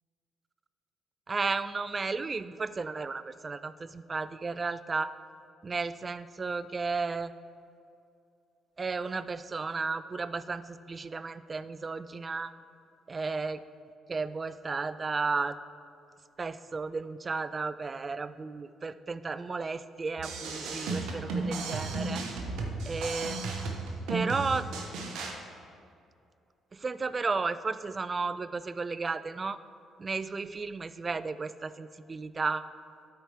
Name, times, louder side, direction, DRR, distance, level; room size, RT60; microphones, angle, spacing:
voice 1, 1.3-5.1 5.6-7.3 8.8-12.5 13.1-13.6 14.1-15.6 16.4-22.2 22.9-23.4 24.1-24.7 26.7-29.6 30.0-32.7, right 4 dB, 35° right, 14 dB, 0.3 m, -33 dB
sound 1, 20.2-25.3, right 3 dB, 70° right, 0.9 m, -34 dB
12.0 x 4.6 x 3.3 m, 2.5 s
hypercardioid pair, 50°, 0 cm